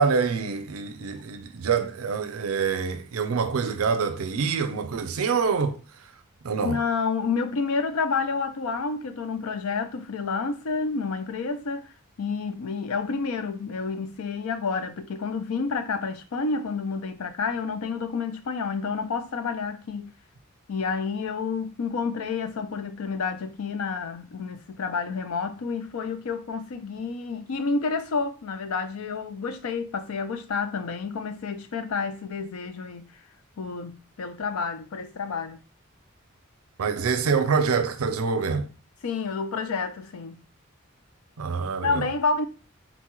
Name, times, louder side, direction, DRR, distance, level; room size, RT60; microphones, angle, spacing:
voice 1, 0.0-5.8 6.4-6.8 36.8-38.7 41.4-42.1, right 5 dB, 85° right, 0.5 m, -25 dB
voice 2, 6.6-11.9 12.2-20.1 20.7-33.1 33.6-35.6 39.0-40.4 41.8-42.5, left 4 dB, 90° left, 0.5 m, -29 dB
3.9 x 2.2 x 2.9 m
head